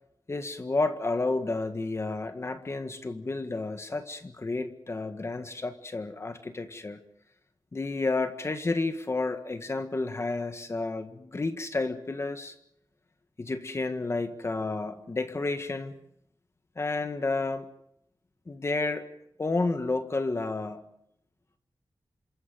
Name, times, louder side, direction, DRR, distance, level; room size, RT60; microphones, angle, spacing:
voice 1, 0.3-7.0 7.7-12.5 13.4-15.9 16.7-17.6 18.5-19.1 19.4-20.9, left 3 dB, 30° left, 7 dB, 1.7 m, -31 dB
27.5 x 14.5 x 9.4 m, 0.75 s
wide cardioid pair, 150°, 9 cm